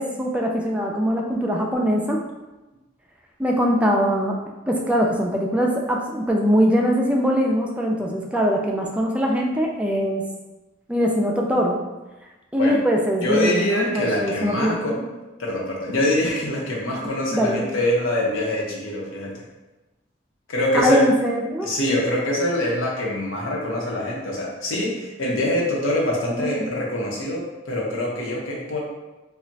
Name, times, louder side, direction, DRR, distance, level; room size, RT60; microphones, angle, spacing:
voice 1, 0.0-2.2 3.4-4.4 4.7-10.2 10.9-11.8 12.5-15.0 17.3-17.6 20.7-21.7 26.4-26.8, equal, 5° right, -1 dB, 0.3 m, -22 dB
voice 2, 13.2-15.0 15.4-19.3 20.5-21.0 21.6-28.8, left 1 dB, 75° left, -3 dB, 0.7 m, -24 dB
2.4 x 2.1 x 3.9 m, 1.1 s
head